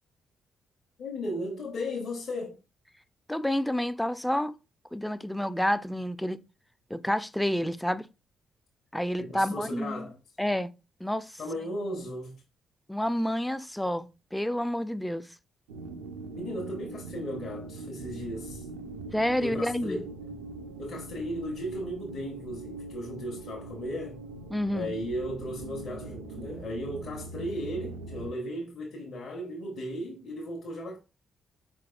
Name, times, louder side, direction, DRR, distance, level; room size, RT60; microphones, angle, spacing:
voice 1, 1.0-2.6 9.2-10.2 11.4-12.3 16.3-18.7 19.4-20.1 20.8-24.2 24.7-31.0, equal, 50° left, 0.8 m, -36 dB
voice 2, 3.3-4.6 4.9-6.4 6.9-8.1 8.9-10.1 10.4-10.7 11.0-11.3 12.9-15.3 19.1-20.0 24.5-24.9, left 1 dB, 5° left, 0.4 m, -29 dB
sound 1, 15.7-28.3, right 3 dB, 70° right, 0.4 m, -42 dB
4.6 x 3.4 x 2.3 m
figure-of-eight pair, 40°, 0 cm